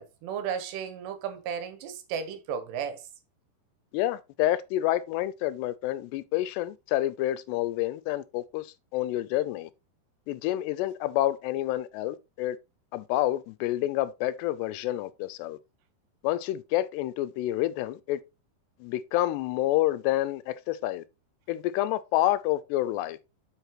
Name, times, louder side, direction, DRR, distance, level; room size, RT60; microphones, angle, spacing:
voice 1, 0.0-3.1, right 7 dB, 80° right, 3.2 m, -34 dB
voice 2, 3.9-8.7 8.9-9.7 10.3-12.6 12.9-15.6 16.2-18.2 18.8-21.0 21.5-23.2, left 14 dB, 85° left, 2.7 m, -28 dB
8.1 x 6.5 x 3.0 m
omnidirectional pair, 4.9 m